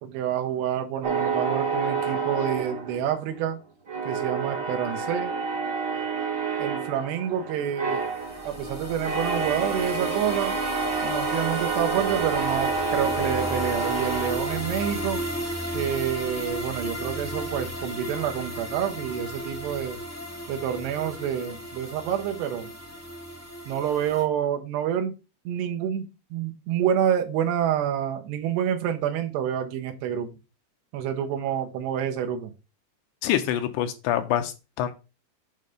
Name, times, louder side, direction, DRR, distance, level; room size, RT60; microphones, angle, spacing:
voice 1, 0.0-3.6 4.0-5.3 6.6-8.1 8.4-10.5 11.0-15.2 15.7-20.0 20.5-22.7 23.7-25.2 25.5-30.4 30.9-32.5, right 9 dB, 85° right, 5 dB, 3.1 m, -28 dB
sound 1, 1.0-3.5 3.9-15.1, right 4 dB, 60° right, 1.1 m, -29 dB
sound 2, 8.0-24.2, equal, 10° left, 0.6 m, -34 dB
voice 2, 33.2-34.9, left 11 dB, 85° left, 8 dB, 2.9 m, -26 dB
8.1 x 3.3 x 5.2 m, 0.29 s
omnidirectional pair, 4.7 m